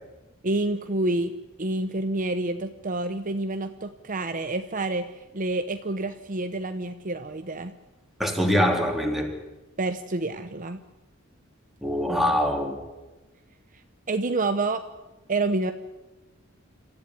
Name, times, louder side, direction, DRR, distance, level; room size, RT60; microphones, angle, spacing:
voice 1, 0.4-1.3 1.6-7.7 9.8-10.8 14.1-14.8 15.3-15.7, right 2 dB, 40° right, 8 dB, 0.9 m, -28 dB
voice 2, 8.2-9.3 11.8-12.8, equal, ahead, 1 dB, 3.8 m, -23 dB
26.5 x 14.5 x 9.9 m, 1.1 s
head